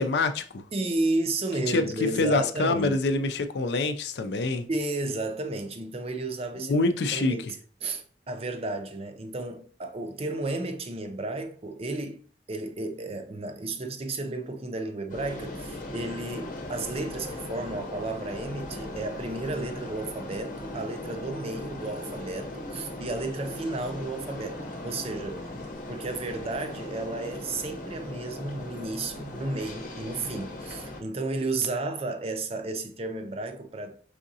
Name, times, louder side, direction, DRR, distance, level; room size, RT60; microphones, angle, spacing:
voice 1, 0.0-0.6 1.7-1.8 2.2-4.7 6.6-7.4, left 3 dB, 65° left, 0.4 m, -25 dB
voice 2, 0.7-3.0 4.7-6.8 7.1-12.2 12.5-25.5 25.9-34.0, right 2 dB, 35° right, 0.5 m, -33 dB
sound 1, 15.1-31.0, left 1 dB, 50° left, 0.8 m, -38 dB
4.9 x 3.6 x 2.7 m
head